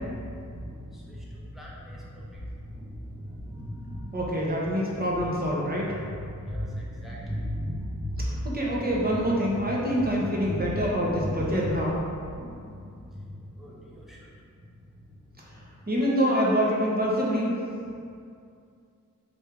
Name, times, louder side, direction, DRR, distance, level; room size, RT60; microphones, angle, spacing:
voice 1, 1.6-2.0 3.5-3.9 6.5-8.1 9.4-9.5 10.4-10.9 11.2-11.5 12.4-12.5 13.6-13.7, equal, ahead, -6 dB, 0.9 m, -33 dB
voice 2, 4.1-5.9 8.2-12.0 15.9-17.5, equal, 30° right, -4 dB, 0.9 m, -26 dB
4.4 x 2.6 x 3.5 m, 2.5 s
wide cardioid pair, 95°, 32 cm